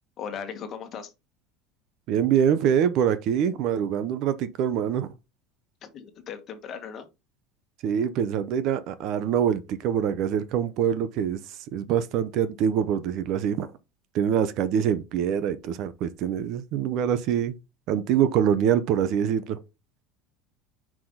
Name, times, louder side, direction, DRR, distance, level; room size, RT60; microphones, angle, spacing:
voice 1, 0.2-1.1 5.8-7.1, left 7 dB, 35° left, 1.4 m, -37 dB
voice 2, 2.1-5.1 7.8-11.4 11.7-13.7 14.1-17.6 17.9-19.6, right 8 dB, 50° right, 0.7 m, -24 dB
5.6 x 5.0 x 3.8 m
cardioid pair, 145°, 0 cm